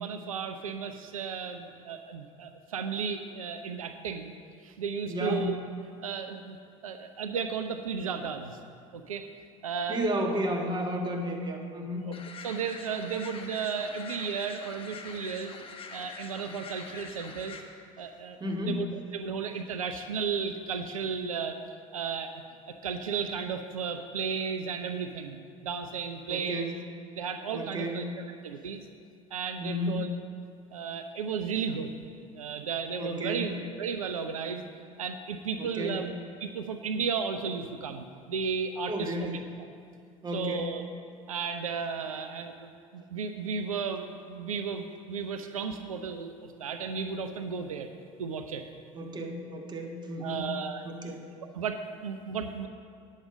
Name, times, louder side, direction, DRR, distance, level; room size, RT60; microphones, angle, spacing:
voice 1, 0.0-4.3 4.6-5.5 6.0-6.6 6.8-8.6 8.9-9.3 9.6-10.0 12.0-12.1 12.4-15.5 15.9-17.6 18.0-18.9 19.1-21.6 21.9-25.4 25.6-26.7 27.2-28.0 28.4-28.8 29.3-30.1 30.7-31.9 32.3-34.6 35.0-36.1 36.4-39.3 39.6-39.7 40.3-40.8 41.3-47.9 48.2-48.7 50.2-50.8 51.5-52.7, right 6 dB, 90° right, 8 dB, 0.5 m, -34 dB
voice 2, 5.1-5.5 9.9-12.1 18.4-18.8 26.3-26.7 27.5-28.1 29.6-30.0 33.0-33.5 35.6-36.0 38.9-39.4 40.2-40.7 48.9-50.4 50.8-51.3, equal, 25° right, 2 dB, 1.5 m, -32 dB
sound 1, 12.1-17.6, left 4 dB, 30° left, 1.1 m, -44 dB
10.0 x 7.4 x 5.0 m, 2.3 s
hypercardioid pair, 75°, 17 cm